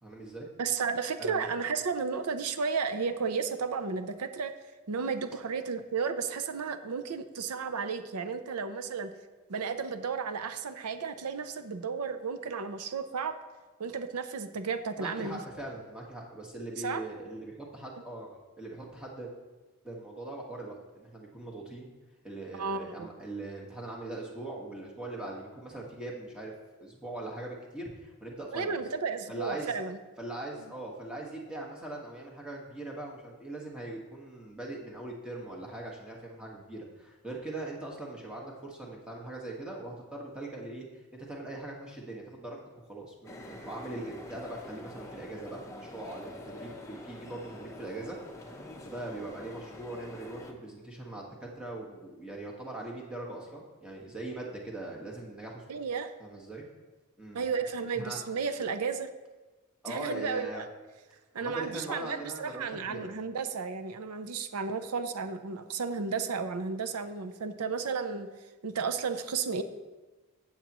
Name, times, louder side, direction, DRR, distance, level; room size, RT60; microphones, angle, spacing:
voice 1, 0.0-0.5 1.2-1.5 15.0-19.3 19.8-21.9 22.2-26.5 26.8-28.8 29.3-29.7 30.2-40.8 41.1-42.6 42.9-48.2 48.4-55.8 56.2-56.7 57.2-57.4 57.9-58.2 59.8-60.6 61.4-63.1, right 2 dB, 5° right, -2 dB, 1.5 m, -41 dB
voice 2, 0.6-4.5 4.9-9.1 9.5-13.4 13.8-15.4 16.8-17.0 22.5-23.1 28.5-30.0 55.7-56.1 57.3-59.1 59.9-60.7 61.3-68.3 68.6-69.6, right 5 dB, 90° right, 10 dB, 0.6 m, -33 dB
sound 1, 43.3-50.5, left 1 dB, 15° left, 0.9 m, -46 dB
15.5 x 7.3 x 3.0 m, 1.2 s
head